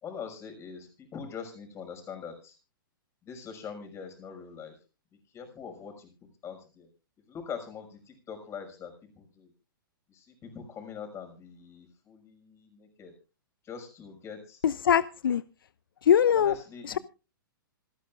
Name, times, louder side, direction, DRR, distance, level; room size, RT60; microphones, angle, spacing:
voice 1, 0.0-2.6 3.2-4.7 5.3-6.1 6.4-6.9 7.3-9.5 10.1-13.1 13.6-14.6 16.3-17.0, left 6 dB, 25° left, 5.8 m, -43 dB
voice 2, 14.6-15.4 16.0-16.6 16.8-17.0, left 9 dB, 75° left, 0.6 m, -22 dB
27.0 x 10.5 x 2.5 m
hypercardioid pair, 120°, 12 cm